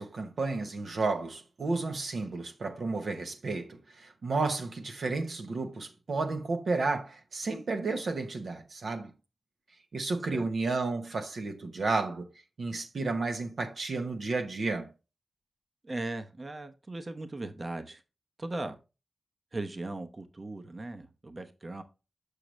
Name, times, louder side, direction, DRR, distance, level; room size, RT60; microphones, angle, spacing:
voice 1, 0.0-9.1 9.9-12.3 12.6-14.9, right 3 dB, 75° right, 0.9 m, -32 dB
voice 2, 15.8-18.0 18.4-18.8 19.5-21.8, right 2 dB, 45° right, 0.8 m, -38 dB
6.5 x 6.3 x 3.1 m
cardioid pair, 45°, 0 cm